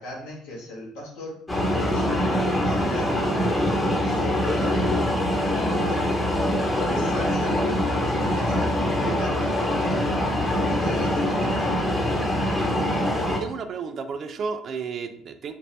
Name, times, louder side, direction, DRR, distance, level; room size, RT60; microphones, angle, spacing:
voice 1, 0.0-1.4 1.7-3.4 4.0-4.8 5.4-6.2 6.8-8.7 9.0-11.7, left 1 dB, 80° left, -3 dB, 1.2 m, -37 dB
sound 1, 1.5-13.4, left 1 dB, 20° left, 1.0 m, -24 dB
voice 2, 12.4-12.9 13.3-15.5, right 5 dB, 55° right, 8 dB, 0.4 m, -33 dB
3.2 x 2.7 x 3.1 m, 0.65 s
hypercardioid pair, 65°, 0 cm